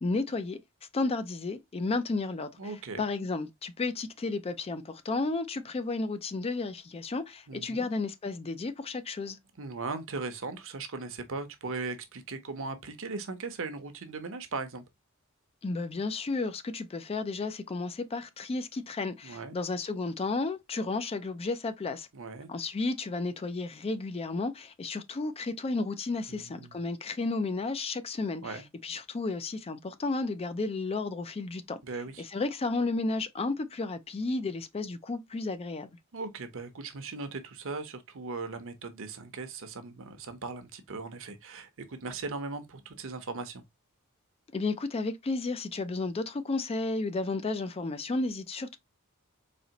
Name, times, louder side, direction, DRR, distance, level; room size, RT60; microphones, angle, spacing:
voice 1, 0.0-0.6 0.9-2.7 3.0-9.4 15.6-22.1 22.5-31.8 32.2-35.9 44.5-48.8, left 3 dB, 25° left, 0.4 m, -32 dB
voice 2, 2.6-3.0 7.5-7.9 9.6-14.8 19.2-19.6 22.1-22.5 26.3-26.8 28.4-28.7 31.8-32.3 36.1-43.6, right 3 dB, 65° right, 0.8 m, -38 dB
4.2 x 2.9 x 2.8 m
head